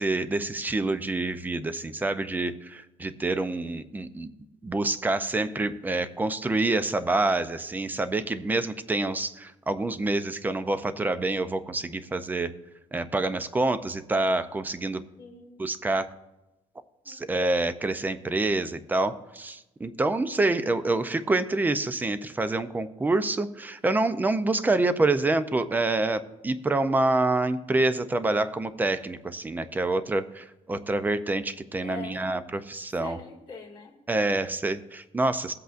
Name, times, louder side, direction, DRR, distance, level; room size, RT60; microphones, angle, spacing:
voice 1, 0.0-4.3 4.6-12.5 12.9-15.0 15.6-16.1 17.1-33.2 34.1-35.5, right 2 dB, 15° right, 12 dB, 0.5 m, -27 dB
voice 2, 15.2-15.6 17.0-17.2 31.8-32.3 33.0-34.0, left 5 dB, 35° left, -5 dB, 2.2 m, -43 dB
22.0 x 8.0 x 2.5 m, 0.98 s
cardioid pair, 145°, 14 cm